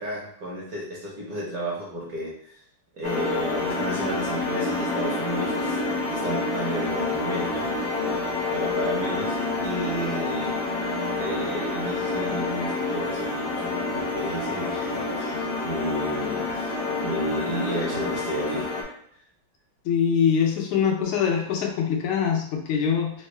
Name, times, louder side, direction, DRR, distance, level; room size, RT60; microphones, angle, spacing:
voice 1, 0.0-2.6 2.9-5.8 6.1-8.0 8.5-10.6 11.2-18.9, equal, 60° right, -5 dB, 1.1 m, -32 dB
sound 1, 3.0-18.8, left 3 dB, 60° left, 1.1 m, -28 dB
voice 2, 19.8-23.1, left 7 dB, 85° left, 1 dB, 1.6 m, -23 dB
3.9 x 2.1 x 3.2 m, 0.67 s
omnidirectional pair, 2.3 m